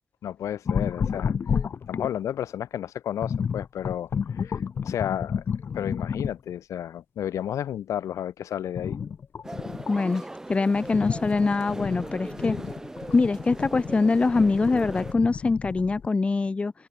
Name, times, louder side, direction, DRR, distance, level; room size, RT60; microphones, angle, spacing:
voice 1, 0.2-1.3 1.9-5.4 5.7-9.0, left 10 dB, 90° left, 2.1 m, -32 dB
sound 1, 0.7-2.3 3.2-6.5 8.8-10.0 10.5-16.1, left 6 dB, 45° left, 0.9 m, -31 dB
sound 2, 9.4-15.1, right 1 dB, 10° right, 3.1 m, -39 dB
voice 2, 9.9-10.2 10.5-12.5 13.1-16.7, left 3 dB, 25° left, 0.7 m, -23 dB
open air
wide cardioid pair, 140°, 5 cm